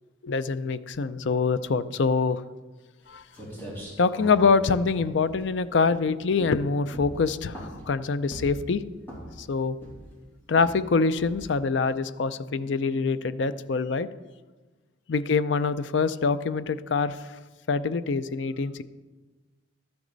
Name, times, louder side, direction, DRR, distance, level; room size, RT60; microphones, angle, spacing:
voice 1, 0.2-2.4 3.1-3.2 4.0-8.8 9.4-9.8 10.5-14.1 15.1-17.2 17.7-18.8, left 4 dB, 65° left, 14 dB, 0.5 m, -25 dB
sound 1, 3.0-3.1 3.3-5.9 6.3-6.6 6.9-7.9 8.3-8.7 9.0-9.4 9.8-10.2 10.6-10.8 11.2-11.5, right 1 dB, 10° left, 3.1 m, -41 dB
12.5 x 9.3 x 4.0 m, 1.3 s
head